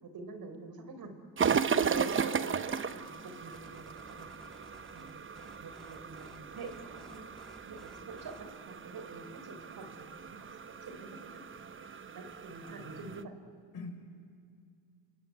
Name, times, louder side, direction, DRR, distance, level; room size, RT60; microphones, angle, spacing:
voice 1, 0.0-1.1 1.7-4.3 4.9-7.3 7.6-10.5 10.8-11.4 12.1-13.3, right 3 dB, 45° right, 8 dB, 4.2 m, -45 dB
sound 1, 1.4-13.2, right 6 dB, 25° right, 0.9 m, -36 dB
sound 2, 3.5-8.6, equal, ahead, 1.9 m, -57 dB
voice 2, 12.6-13.2 13.7-14.0, left 3 dB, 45° left, 6 dB, 4.8 m, -46 dB
28.5 x 20.5 x 9.5 m, 2.2 s
supercardioid pair, 75°, 49 cm